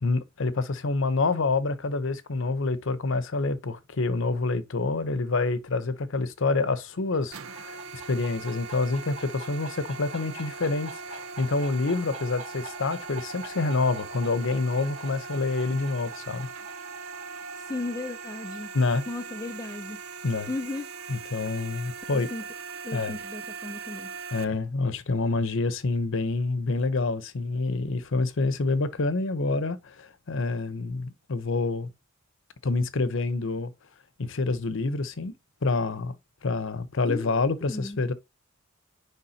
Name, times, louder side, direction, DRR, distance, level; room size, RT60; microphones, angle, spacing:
voice 1, 0.0-16.5 18.7-19.0 20.2-20.5 21.1-22.3 22.9-23.2 24.3-31.9 32.6-33.7 34.2-35.3 35.6-36.1 36.4-38.1, left 3 dB, 70° left, 0.7 m, -27 dB
sound 1, 6.9-20.3, right 3 dB, 40° right, 3.0 m, -47 dB
sound 2, 7.3-24.4, right 5 dB, 85° right, 0.7 m, -40 dB
voice 2, 17.7-18.7 19.1-20.0 20.5-20.9 22.1-22.4 22.8-24.1 37.0-38.0, left 2 dB, 15° left, 0.4 m, -35 dB
9.8 x 3.6 x 2.8 m
head